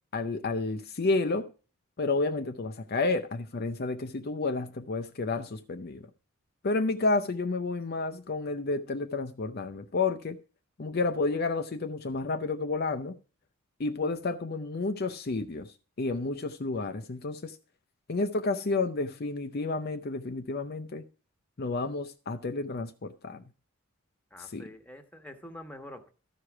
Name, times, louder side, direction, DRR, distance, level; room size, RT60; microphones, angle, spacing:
voice 1, 0.1-1.5 2.0-6.1 6.6-10.4 10.8-13.1 13.8-17.6 18.1-21.0 21.6-23.4 24.4-24.7, left 3 dB, 45° left, 0.6 m, -30 dB
voice 2, 24.3-26.1, left 1 dB, 5° left, 1.2 m, -46 dB
13.5 x 4.9 x 5.9 m
head